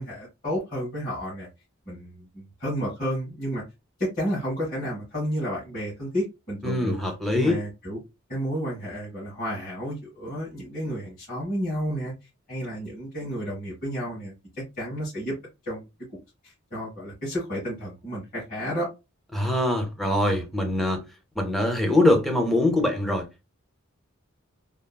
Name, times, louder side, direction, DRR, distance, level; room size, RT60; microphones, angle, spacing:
voice 1, 0.0-1.5 1.9-3.6 4.0-8.0 8.3-12.1 12.5-15.3 15.7-15.8 16.4-18.9, equal, 40° left, 1.7 m, -31 dB
voice 2, 6.6-7.6 19.3-21.0 21.4-23.3, left 1 dB, ahead, 0.6 m, -23 dB
3.5 x 2.0 x 2.2 m
head